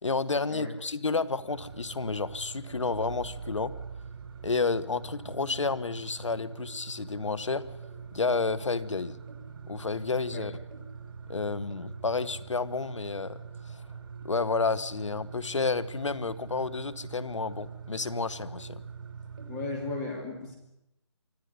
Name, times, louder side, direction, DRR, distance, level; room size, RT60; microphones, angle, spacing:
voice 1, 0.0-3.7 4.4-7.6 8.1-9.2 9.7-10.5 11.3-13.4 13.6-13.7 14.2-18.8, left 4 dB, 90° left, 16 dB, 1.7 m, -30 dB
sound 1, 1.5-20.0, right 5 dB, 50° right, 5.9 m, -43 dB
voice 2, 19.5-20.6, left 3 dB, 10° left, 0 dB, 2.7 m, -35 dB
24.5 x 15.5 x 9.8 m, 0.86 s
hypercardioid pair, 175°, 15 cm